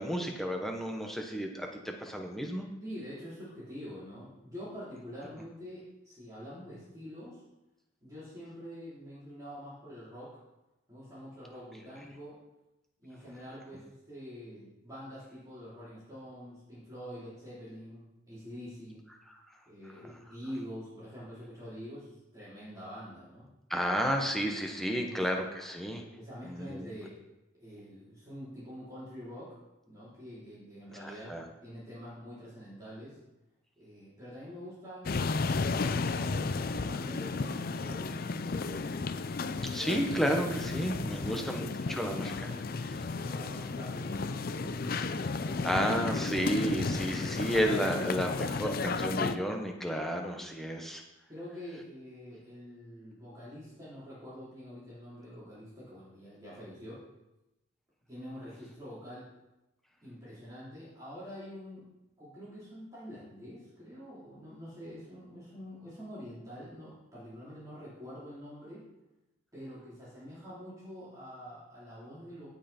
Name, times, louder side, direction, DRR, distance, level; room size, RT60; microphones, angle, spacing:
voice 1, 0.0-2.7 20.0-20.1 23.7-26.0 26.4-26.8 31.0-31.4 39.7-43.0 45.6-51.0, equal, ahead, 2 dB, 1.2 m, -32 dB
voice 2, 2.8-7.4 8.0-10.4 10.9-12.4 13.0-19.0 19.7-23.5 24.9-25.2 26.2-27.1 27.6-29.6 29.9-31.4 31.6-33.2 33.8-39.0 41.1-42.4 43.1-45.9 51.3-57.0 58.1-59.3 60.0-61.8 62.2-68.8 69.5-72.5, equal, 15° right, -10 dB, 4.0 m, -46 dB
sound 1, 35.0-49.4, left 4 dB, 50° left, 0.5 m, -33 dB
17.0 x 5.6 x 4.4 m, 0.96 s
head